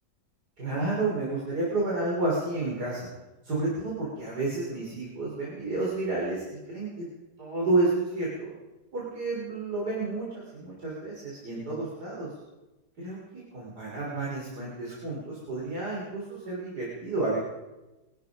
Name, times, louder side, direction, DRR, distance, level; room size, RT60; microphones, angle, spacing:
voice 1, 0.6-3.1 3.4-7.1 7.4-8.5 8.9-12.3 13.0-17.4, right 2 dB, 60° right, -5 dB, 4.2 m, -30 dB
23.5 x 11.5 x 5.0 m, 1.1 s
omnidirectional pair, 1.9 m